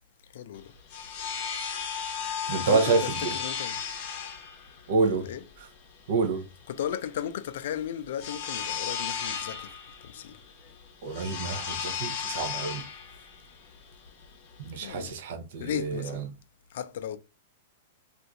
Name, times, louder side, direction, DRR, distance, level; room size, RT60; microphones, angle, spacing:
voice 1, 0.3-0.7 2.6-3.8 5.1-5.4 6.7-9.8 10.0-10.4 14.8-15.1 15.6-16.3 16.7-17.2, left 10 dB, 60° left, 0.3 m, -35 dB
sound 1, 0.5-15.1, left 7 dB, 35° left, 0.7 m, -35 dB
voice 2, 2.5-3.3 4.9-5.3 6.1-6.5 11.0-12.8 14.6-16.2, right 4 dB, 55° right, 0.6 m, -28 dB
2.5 x 2.3 x 4.0 m
supercardioid pair, 170°, 0 cm